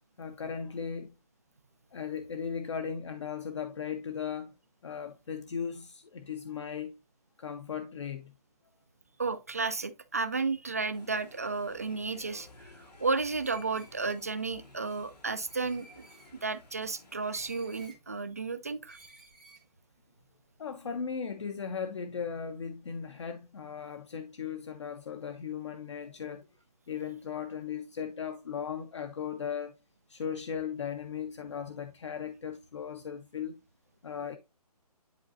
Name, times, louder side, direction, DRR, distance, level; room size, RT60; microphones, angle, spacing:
voice 1, 0.2-1.1 1.9-4.5 4.8-6.9 7.4-8.3 20.6-26.5 26.9-29.8 30.1-33.6 34.0-34.4, left 7 dB, 45° left, 0.7 m, -37 dB
voice 2, 9.2-16.1 16.4-19.0, right 4 dB, 25° right, 0.3 m, -33 dB
sound 1, 10.9-17.9, left 3 dB, 85° left, 2.6 m, -55 dB
Screech, 13.4-14.4 15.5-16.3 17.3-18.0 18.9-19.6, right 2 dB, ahead, 0.7 m, -55 dB
10.5 x 3.9 x 2.5 m
hypercardioid pair, 170°, 20 cm